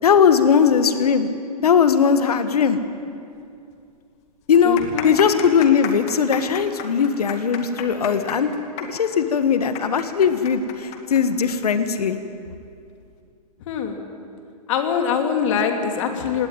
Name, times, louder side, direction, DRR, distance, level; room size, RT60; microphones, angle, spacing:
voice 1, 0.0-1.3 1.6-2.8 4.5-4.8 5.0-8.5 8.9-12.2, left 7 dB, 70° left, 10 dB, 1.6 m, -19 dB
sound 1, 3.3-3.4 3.7-3.8 4.4-11.7 12.0-12.1 12.8-13.1, left 9 dB, 35° left, 2.3 m, -33 dB
voice 2, 4.6-5.2 13.7-14.0 14.7-16.5, left 7 dB, 50° left, 5 dB, 2.8 m, -23 dB
19.0 x 17.5 x 9.3 m, 2.5 s
figure-of-eight pair, 115°, 20 cm